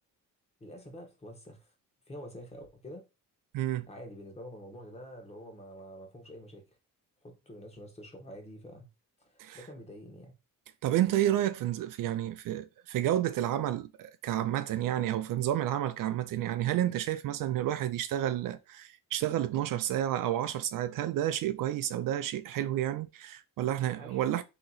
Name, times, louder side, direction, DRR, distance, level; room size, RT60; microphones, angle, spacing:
voice 1, 0.6-1.7 2.1-3.0 3.8-6.7 7.2-8.9 9.2-10.3 24.0-24.4, equal, 20° left, 1.1 m, -47 dB
voice 2, 3.5-3.9 9.4-9.6 10.8-24.4, right 12 dB, 75° right, 0.5 m, -30 dB
3.8 x 2.9 x 4.0 m
cardioid pair, 145°, 33 cm